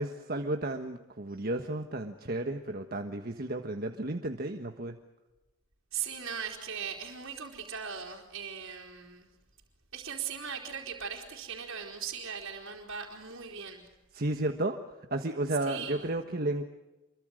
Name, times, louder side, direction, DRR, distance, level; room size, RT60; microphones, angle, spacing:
voice 1, 0.0-5.0 14.1-14.8 15.1-16.6, right 2 dB, 50° right, 6 dB, 1.4 m, -33 dB
voice 2, 5.9-9.3 9.9-13.9 15.7-16.1, right 7 dB, 85° right, -3 dB, 4.0 m, -39 dB
28.0 x 23.5 x 6.4 m, 1.1 s
head